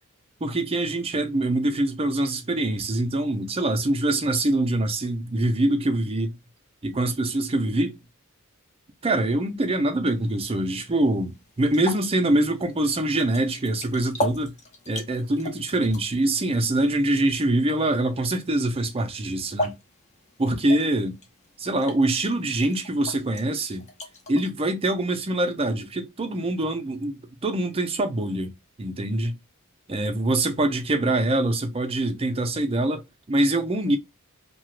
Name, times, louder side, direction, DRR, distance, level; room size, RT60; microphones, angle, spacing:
voice 1, 0.4-6.4 6.8-8.0 9.0-14.6 14.9-19.7 20.4-21.2 21.6-23.8 24.3-28.5 28.8-29.4 29.9-34.0, right 1 dB, 25° right, 0.5 m, -24 dB
sound 1, 10.1-24.5, left 1 dB, 30° left, 0.7 m, -38 dB
2.8 x 2.3 x 3.0 m
head